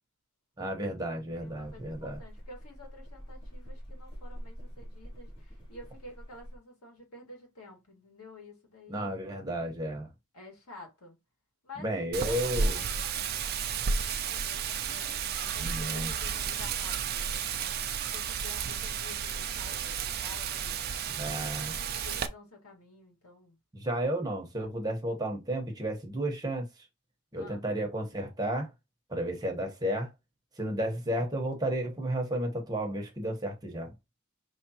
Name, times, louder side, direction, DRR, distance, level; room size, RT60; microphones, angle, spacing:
voice 1, 0.6-2.2 8.9-10.1 11.8-12.8 15.6-16.1 21.2-21.8 23.7-26.7 27.3-28.7 29.1-30.1 30.6-33.9, right 1 dB, 20° right, 1.3 m, -32 dB
voice 2, 1.3-9.2 10.3-11.2 11.6-17.8 18.1-21.3 21.9-23.6 27.4-27.7, left 2 dB, 80° left, 2.0 m, -51 dB
sound 1, 1.3-6.6, equal, 25° left, 2.2 m, -46 dB
Wind, 12.1-22.3, right 6 dB, 45° right, 0.5 m, -32 dB
5.2 x 3.3 x 3.0 m
head